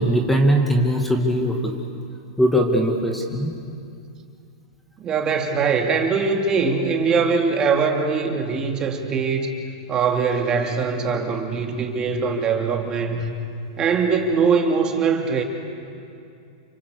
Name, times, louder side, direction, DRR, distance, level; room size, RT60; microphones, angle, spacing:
voice 1, 0.0-1.7 2.4-3.6, equal, 5° left, 1 dB, 2.4 m, -20 dB
voice 2, 5.0-9.5 9.9-13.3 13.8-15.4, right 5 dB, 30° right, 2 dB, 2.9 m, -22 dB
28.5 x 25.0 x 6.7 m, 2.5 s
hypercardioid pair, 120°, 3 cm